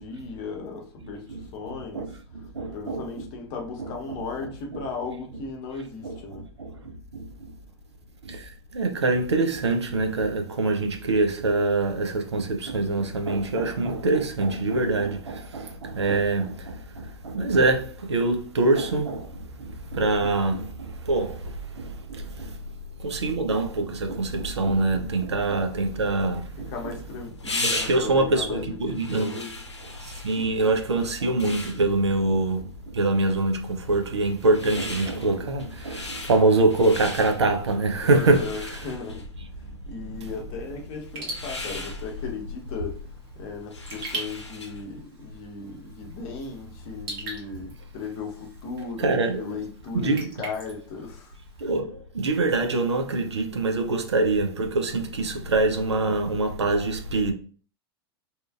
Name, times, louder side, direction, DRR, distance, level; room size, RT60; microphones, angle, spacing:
voice 1, 0.0-2.1 2.7-6.5 26.7-29.6 38.0-39.3 39.9-43.0 43.4-51.3, left 4 dB, 45° left, 0.8 m, -36 dB
voice 2, 2.5-3.3 4.7-4.8 6.0-6.7 7.1-7.2 8.3-8.4 8.7-19.3 19.6-22.5 23.0-26.7 27.6-29.4 30.0-32.7 32.9-38.4 40.2-40.3 48.7-49.5 49.9-50.3 51.6-57.3, right 2 dB, 80° right, 0.5 m, -24 dB
sound 1, 26.4-44.9, left 2 dB, 90° left, 0.7 m, -38 dB
Raindrop / Drip, 41.0-51.8, right 2 dB, 55° right, 1.3 m, -42 dB
2.8 x 2.4 x 2.3 m
figure-of-eight pair, 95°, 14 cm